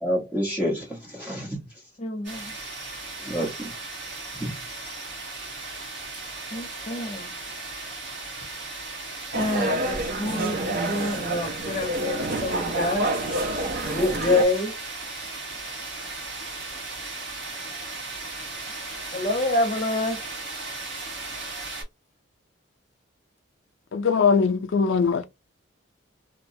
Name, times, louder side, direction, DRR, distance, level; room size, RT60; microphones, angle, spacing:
voice 1, 0.0-1.6 3.2-3.9 4.4-4.5, equal, 10° right, 0.9 m, -29 dB
voice 2, 2.0-2.5 6.5-7.3 9.3-14.8 19.1-20.2, left 2 dB, 35° left, 0.8 m, -27 dB
sound 1, 2.2-21.8, right 3 dB, 70° right, 1.3 m, -36 dB
sound 2, 9.3-14.4, right 2 dB, 45° right, 0.5 m, -28 dB
voice 3, 23.9-25.2, left 5 dB, 70° left, 0.4 m, -21 dB
2.8 x 2.2 x 2.6 m
head